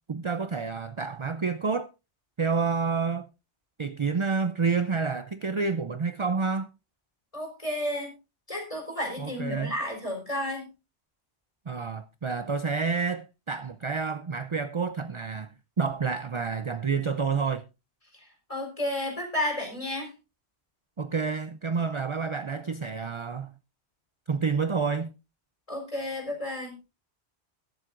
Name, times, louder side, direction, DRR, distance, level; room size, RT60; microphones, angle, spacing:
voice 1, 0.1-1.9 2.4-3.3 3.8-6.7 9.2-9.7 11.7-15.5 15.8-17.6 21.0-23.5 24.3-25.1, right 5 dB, 40° right, 0.5 m, -29 dB
voice 2, 7.3-8.1 8.5-10.7 18.1-18.2 18.5-20.1 25.7-26.8, left 1 dB, 30° left, 4.4 m, -32 dB
22.0 x 7.5 x 2.5 m
omnidirectional pair, 1.1 m